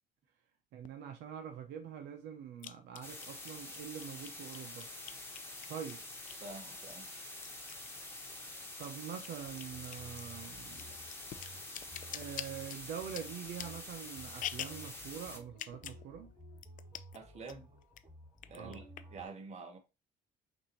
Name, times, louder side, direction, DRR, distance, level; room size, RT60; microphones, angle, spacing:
voice 1, 0.7-4.9 5.7-6.0 8.8-10.9 12.1-16.3 18.5-18.8, right 8 dB, 80° right, 0.7 m, -45 dB
sound 1, 0.8-0.9 2.6-6.5 6.9-8.5 8.7-14.9 15.5-16.0 16.3-16.4 16.6-17.2 17.5-18.0 18.4-19.3, left 11 dB, 50° left, 0.4 m, -46 dB
sound 2, 3.0-15.4, left 2 dB, 15° left, 1.2 m, -47 dB
voice 2, 6.4-7.1 17.1-17.7 18.5-19.8, right 4 dB, 40° right, 1.2 m, -48 dB
sound 3, 9.4-19.3, equal, 15° right, 1.6 m, -55 dB
5.9 x 2.6 x 2.9 m
cardioid pair, 110°, 17 cm